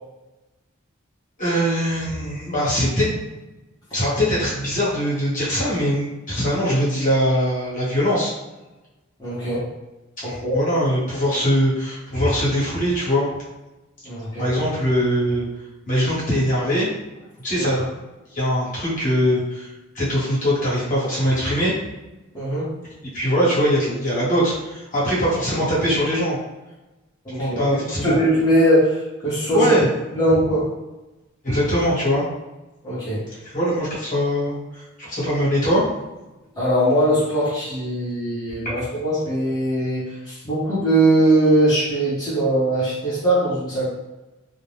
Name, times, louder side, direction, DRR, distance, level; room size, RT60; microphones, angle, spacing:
voice 1, 1.4-3.4 3.9-8.3 10.2-13.3 14.4-15.4 15.9-16.9 17.4-17.8 18.3-19.7 19.9-21.7 23.1-26.4 27.4-28.2 29.5-29.9 31.4-32.2 33.4-35.8, equal, 40° left, -8 dB, 1.2 m, -21 dB
voice 2, 9.2-9.6 10.2-10.6 14.0-14.5 17.6-17.8 22.3-22.7 27.3-27.6 28.0-29.7 30.1-30.6 32.8-33.4 36.5-43.9, right 1 dB, 20° left, -12 dB, 0.8 m, -20 dB
2.5 x 2.1 x 3.3 m, 1.0 s
head